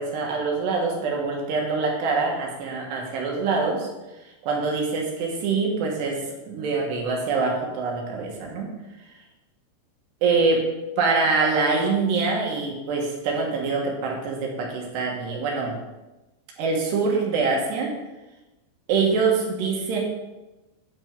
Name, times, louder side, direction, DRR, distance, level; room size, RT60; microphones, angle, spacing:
voice 1, 0.0-3.9 4.4-6.2 6.5-8.7 10.2-10.6 11.0-15.8 16.6-17.9 18.9-20.0, right 4 dB, 70° right, 0 dB, 3.4 m, -24 dB
9.4 x 6.2 x 5.2 m, 1.0 s
omnidirectional pair, 5.2 m